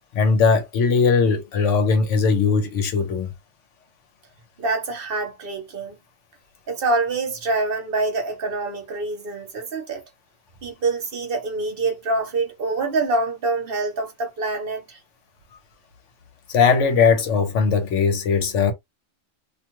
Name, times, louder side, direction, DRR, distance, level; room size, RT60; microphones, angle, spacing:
voice 1, 0.1-3.3 16.5-18.7, left 5 dB, 70° left, 1.0 m, -19 dB
voice 2, 4.6-6.0 6.7-10.0 10.6-15.0, right 3 dB, 50° right, 1.0 m, -25 dB
2.5 x 2.3 x 2.9 m
omnidirectional pair, 1.3 m